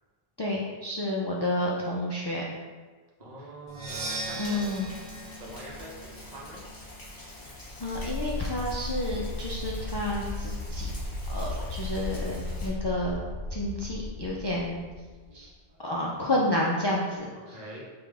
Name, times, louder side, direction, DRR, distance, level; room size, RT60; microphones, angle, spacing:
voice 1, 0.4-2.4 4.4-4.9 7.8-10.9 11.3-13.2 13.5-14.8 15.3-15.5 15.8-17.6, left 1 dB, 45° left, -4 dB, 0.3 m, -30 dB
voice 2, 3.2-4.7 5.4-6.6 15.3-15.8 17.3-17.8, right 1 dB, 45° right, -3 dB, 0.9 m, -45 dB
Percussion, 3.7-7.5, right 2 dB, 80° right, 0.9 m, -39 dB
Rain, 3.9-12.7, left 1 dB, 65° left, 1.5 m, -46 dB
sound 1, 7.9-15.5, left 2 dB, 85° left, 0.9 m, -35 dB
4.8 x 2.6 x 3.4 m, 1.4 s
omnidirectional pair, 1.0 m